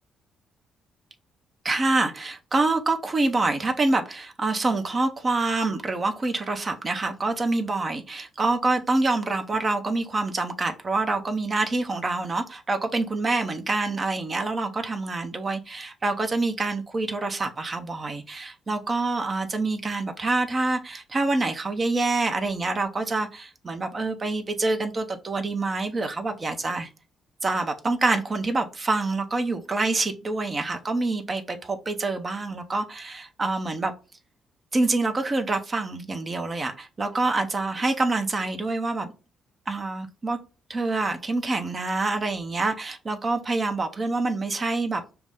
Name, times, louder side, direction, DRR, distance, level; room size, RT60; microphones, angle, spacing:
voice 1, 1.6-26.9 27.4-33.9 34.7-39.1 39.7-40.4 40.7-45.0, right 3 dB, 35° right, 0.6 m, -26 dB
5.7 x 2.1 x 3.5 m
cardioid pair, 90°, 0 cm